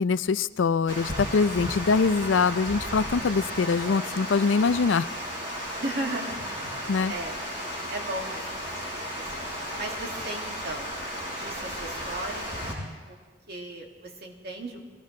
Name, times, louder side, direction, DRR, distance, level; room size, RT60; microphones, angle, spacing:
voice 1, 0.0-5.1 6.9-7.1, left 5 dB, 90° left, 15 dB, 0.5 m, -23 dB
Water, 0.9-12.7, equal, 35° right, 5.7 m, -34 dB
voice 2, 5.7-6.4 7.1-7.4 7.9-9.4 9.7-10.9 11.4-12.4 13.1-13.2 13.5-14.8, right 1 dB, 60° right, 0 dB, 2.3 m, -36 dB
23.0 x 17.5 x 3.3 m, 1.5 s
head